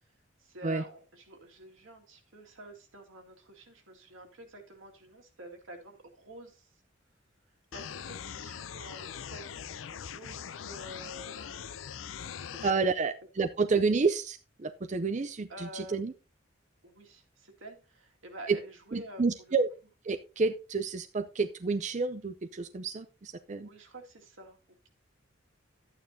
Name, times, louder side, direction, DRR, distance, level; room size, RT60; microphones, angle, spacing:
voice 1, 0.4-6.7 7.7-11.4 12.2-12.4 12.7-12.8 15.5-16.1 16.8-19.6 23.6-24.6, right 1 dB, 85° right, 2 dB, 2.1 m, -48 dB
sound 1, 7.7-12.7, left 8 dB, 85° left, 0.5 m, -42 dB
voice 2, 12.6-16.1 18.5-18.6 18.9-19.7 20.0-23.7, right 4 dB, 35° right, 9 dB, 0.5 m, -30 dB
11.5 x 8.9 x 2.7 m, 0.31 s
head